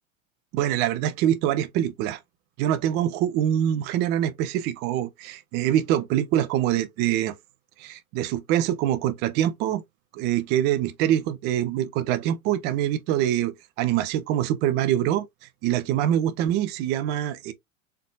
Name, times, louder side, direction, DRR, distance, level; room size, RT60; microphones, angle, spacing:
voice 1, 0.5-2.2 2.6-7.3 7.8-9.8 10.1-15.3 15.6-17.5, right 11 dB, 25° right, 0.4 m, -24 dB
4.4 x 2.6 x 2.3 m
figure-of-eight pair, 85°, 41 cm